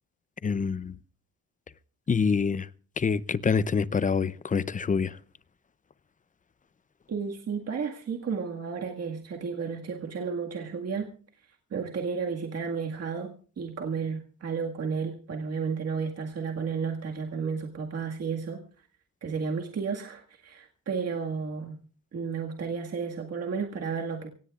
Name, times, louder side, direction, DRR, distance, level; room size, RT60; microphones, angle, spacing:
voice 1, 0.4-1.0 2.1-2.7 3.0-5.2, left 5 dB, 25° left, 0.6 m, -26 dB
voice 2, 7.1-11.1 11.7-18.6 19.2-21.8 22.1-24.3, right 5 dB, 45° right, 1.9 m, -32 dB
24.5 x 18.0 x 2.5 m
cardioid pair, 120°, 34 cm